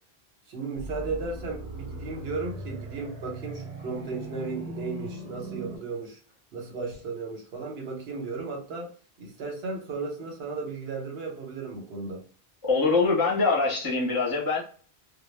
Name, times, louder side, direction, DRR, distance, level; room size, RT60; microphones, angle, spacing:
voice 1, 0.5-6.2 6.5-8.9 9.2-12.2, right 4 dB, 70° right, 1.0 m, -35 dB
sound 1, 0.8-5.8, right 1 dB, 45° right, 0.6 m, -39 dB
voice 2, 12.6-14.6, left 4 dB, 25° left, 0.7 m, -23 dB
2.0 x 2.0 x 3.1 m
omnidirectional pair, 1.1 m